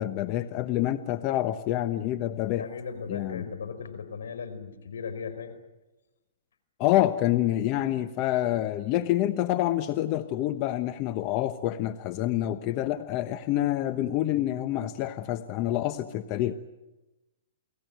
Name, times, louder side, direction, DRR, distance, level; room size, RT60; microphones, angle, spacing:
voice 1, 0.0-2.7 3.1-3.4 6.8-16.5, left 13 dB, 40° left, 10 dB, 1.0 m, -27 dB
voice 2, 2.6-5.6, left 6 dB, 85° left, 10 dB, 4.7 m, -37 dB
29.0 x 19.0 x 9.3 m, 1.1 s
hypercardioid pair, 130°, 0 cm